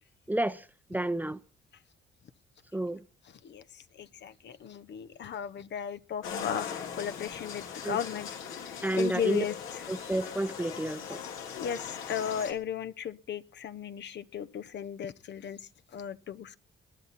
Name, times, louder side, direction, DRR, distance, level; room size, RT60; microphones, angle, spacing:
voice 1, 0.3-0.6 0.9-1.4 2.7-3.0 7.8-8.0 8.8-9.4 9.9-11.2, right 1 dB, 10° right, 0.7 m, -30 dB
voice 2, 3.4-9.8 11.5-16.6, left 8 dB, 60° left, 1.0 m, -36 dB
sound 1, 6.2-12.5, left 7 dB, 90° left, 3.7 m, -40 dB
21.0 x 11.0 x 4.2 m
cardioid pair, 90°, 20 cm